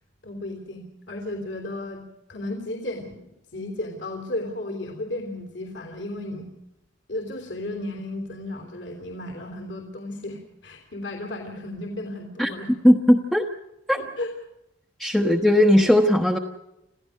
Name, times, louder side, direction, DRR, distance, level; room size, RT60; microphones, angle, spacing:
voice 1, 0.2-2.0 2.3-6.5 7.1-12.7 14.0-14.3, left 1 dB, 65° left, 2 dB, 3.2 m, -34 dB
voice 2, 12.8-13.5 13.9-14.0 15.0-16.4, left 1 dB, ahead, 0 dB, 1.0 m, -17 dB
27.5 x 15.5 x 6.4 m, 0.88 s
head